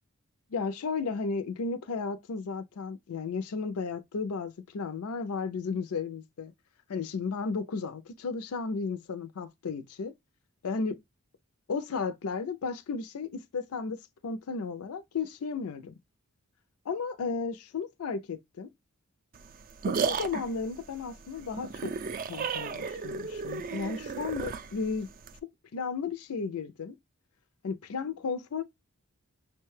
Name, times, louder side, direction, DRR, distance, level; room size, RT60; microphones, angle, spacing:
voice 1, 0.5-6.5 6.9-10.1 10.6-11.0 11.7-15.9 16.9-18.7 19.9-21.9 22.3-25.1 25.7-27.0 27.6-28.6, left 4 dB, 80° left, 0.4 m, -34 dB
sound 1, 19.3-25.4, right 6 dB, 40° right, 0.3 m, -34 dB
6.1 x 2.2 x 3.1 m
head